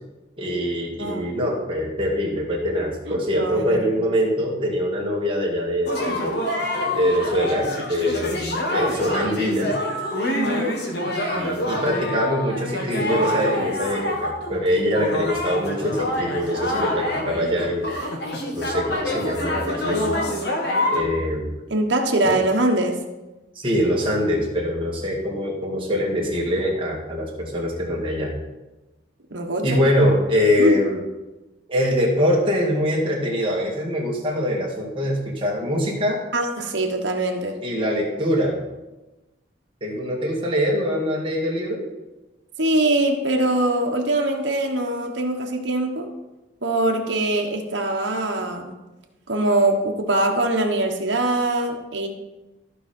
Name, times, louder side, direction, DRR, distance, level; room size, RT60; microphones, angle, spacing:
voice 1, 0.4-6.4 6.9-8.3 8.7-9.7 11.3-17.9 18.5-20.2 20.9-21.5 22.2-22.3 23.6-28.3 29.6-31.0 31.7-36.2 37.6-38.6 39.8-41.8, equal, 25° right, -3 dB, 2.2 m, -23 dB
voice 2, 1.0-1.4 3.1-4.0 10.2-10.8 21.7-23.0 29.3-29.8 30.6-30.8 36.3-37.6 42.6-46.1 46.6-48.8 49.3-52.1, right 1 dB, 65° right, 2 dB, 1.3 m, -23 dB
sound 1, 5.9-21.0, left 1 dB, 55° left, 1.6 m, -26 dB
14.5 x 5.0 x 4.5 m, 1.1 s
head